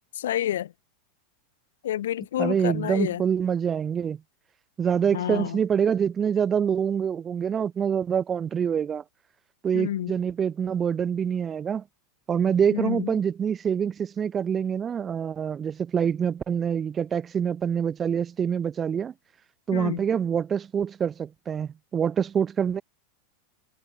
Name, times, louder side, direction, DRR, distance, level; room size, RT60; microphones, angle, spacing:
voice 1, 0.2-0.7 1.8-3.2 5.1-5.6 9.7-10.1 12.7-13.1 19.7-20.0, left 12 dB, 90° left, 5.9 m, -29 dB
voice 2, 2.4-4.2 4.8-9.0 9.6-11.8 12.3-19.1 19.7-22.8, right 7 dB, 20° right, 2.3 m, -26 dB
supercardioid pair, 135°, 0 cm